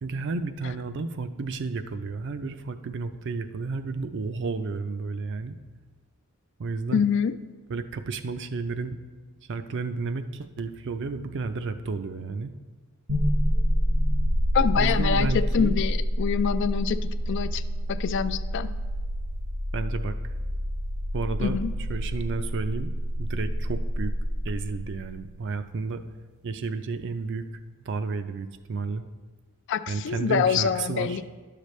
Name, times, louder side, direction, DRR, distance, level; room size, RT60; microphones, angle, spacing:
voice 1, 0.0-5.6 6.6-7.1 7.7-9.0 9.5-12.5 14.8-15.8 19.7-20.1 21.1-21.6 21.9-22.9 23.2-24.1 24.4-26.0 26.4-27.4 27.9-29.0 29.9-31.2, right 4 dB, 55° right, 10 dB, 0.4 m, -32 dB
voice 2, 6.9-7.3 14.5-15.3 15.5-17.6 17.9-18.7 21.4-21.7 29.7-31.3, left 7 dB, 55° left, 13 dB, 0.3 m, -25 dB
sound 1, 13.1-25.1, equal, 70° right, 0.9 m, -27 dB
11.0 x 6.7 x 3.2 m, 1.3 s
head